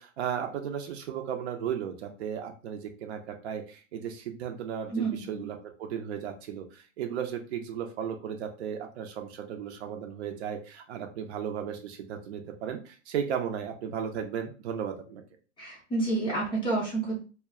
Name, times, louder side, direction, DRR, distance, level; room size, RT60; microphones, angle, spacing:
voice 1, 0.0-15.2, right 8 dB, 55° right, 4 dB, 0.6 m, -35 dB
voice 2, 4.9-5.4 15.6-17.2, right 3 dB, 15° left, -4 dB, 0.4 m, -29 dB
2.2 x 2.2 x 3.5 m, 0.36 s
hypercardioid pair, 110°, 39 cm